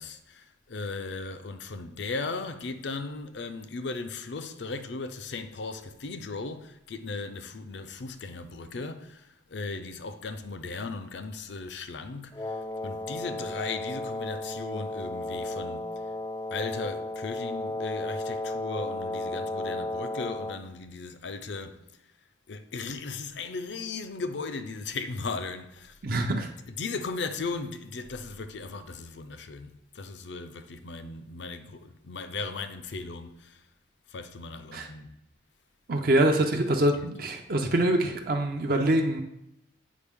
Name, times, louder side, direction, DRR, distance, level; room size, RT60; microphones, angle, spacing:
voice 1, 0.0-12.6 12.8-15.9 16.5-21.8 22.5-25.9 26.8-33.6 34.1-35.1 37.0-37.1, left 3 dB, 70° left, 0.6 m, -37 dB
Wind instrument woodwind instrument, 12.3-20.6, left 1 dB, 20° left, 0.3 m, -34 dB
voice 2, 26.0-26.5 34.7-34.9 35.9-39.2, right 1 dB, 50° right, 0.6 m, -24 dB
8.4 x 5.1 x 3.5 m
head